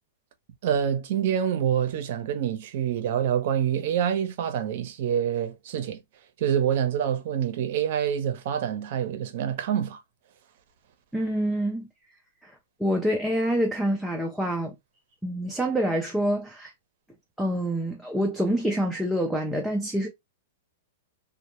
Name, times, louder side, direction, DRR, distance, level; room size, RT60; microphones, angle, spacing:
voice 1, 0.6-6.0 6.4-10.0, right 9 dB, 50° right, 0.6 m, -26 dB
voice 2, 11.1-11.9 12.4-12.5 12.8-14.7 15.2-16.7 17.4-20.1, equal, ahead, 0.3 m, -26 dB
2.1 x 2.0 x 2.9 m
supercardioid pair, 160°, 0 cm